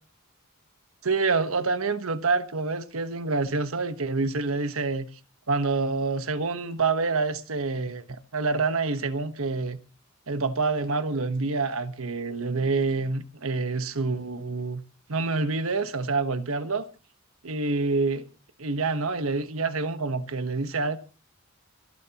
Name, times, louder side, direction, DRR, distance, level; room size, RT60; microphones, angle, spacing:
voice 1, 1.0-5.1 5.5-8.0 8.3-9.8 10.3-14.8 15.1-16.9 17.4-18.2 18.6-21.0, right 3 dB, 80° right, 1.2 m, -27 dB
27.5 x 11.0 x 3.0 m
head